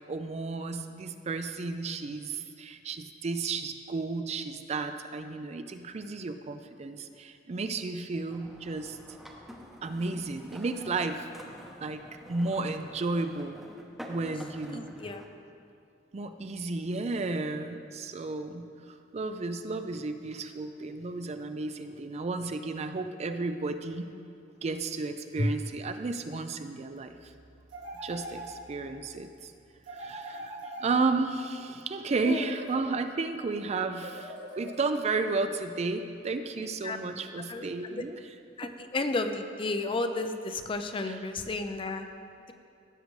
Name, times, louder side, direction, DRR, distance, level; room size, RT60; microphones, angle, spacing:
voice 1, 0.1-9.0 9.8-11.2 11.8-12.0 12.3-13.6 14.1-14.9 16.1-24.1 24.6-27.3 28.0-29.5 29.9-30.5 30.8-38.2 38.6-38.7 41.0-41.2, right 3 dB, 35° right, 8 dB, 0.4 m, -33 dB
sound 1, 8.3-15.3, equal, ahead, 0.8 m, -48 dB
voice 2, 14.7-15.2 25.4-25.5 32.3-32.5 36.8-37.0 37.5-38.0 38.6-42.1, left 2 dB, 30° left, 7 dB, 0.5 m, -32 dB
sound 2, 27.7-29.0 29.8-31.4 32.0-33.2 34.0-35.2, right 1 dB, 80° right, 1.8 m, -43 dB
15.5 x 6.5 x 3.2 m, 2.5 s
head